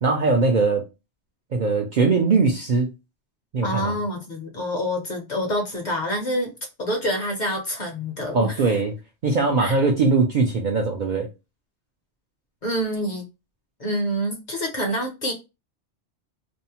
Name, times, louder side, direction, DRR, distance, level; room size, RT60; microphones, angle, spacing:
voice 1, 0.0-0.9 1.5-2.9 3.5-4.0 8.3-8.9 9.2-11.3, right 3 dB, 60° right, 0.5 m, -21 dB
voice 2, 3.6-6.5 6.8-8.5 9.6-9.8 12.6-13.2 13.8-15.3, equal, 50° left, 0.7 m, -27 dB
2.6 x 2.0 x 2.8 m
omnidirectional pair, 1.2 m